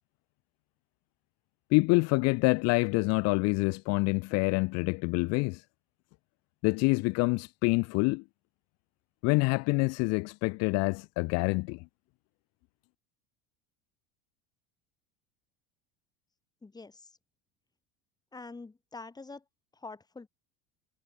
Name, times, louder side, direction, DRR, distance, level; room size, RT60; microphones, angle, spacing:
voice 1, 1.7-5.6 6.6-8.2 9.2-11.8, left 27 dB, 60° left, 0.6 m, -26 dB
voice 2, 16.6-17.1 18.3-19.4 19.8-20.3, left 3 dB, 15° left, 4.1 m, -45 dB
supercardioid pair, 120°, 29 cm